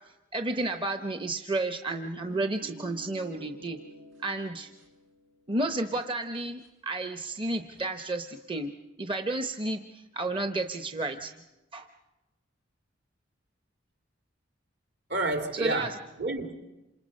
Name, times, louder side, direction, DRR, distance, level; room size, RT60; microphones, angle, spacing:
voice 1, 0.3-3.8 4.2-4.7 5.5-11.3 11.7-11.9 15.5-15.9, right 2 dB, 25° right, 0.8 m, -32 dB
sound 1, 1.9-5.5 6.0-6.1 6.6-6.7 7.5-7.9, right 1 dB, 90° right, 7.6 m, -50 dB
voice 2, 15.1-16.5, right 2 dB, 60° right, 2.3 m, -30 dB
28.0 x 26.5 x 5.4 m
head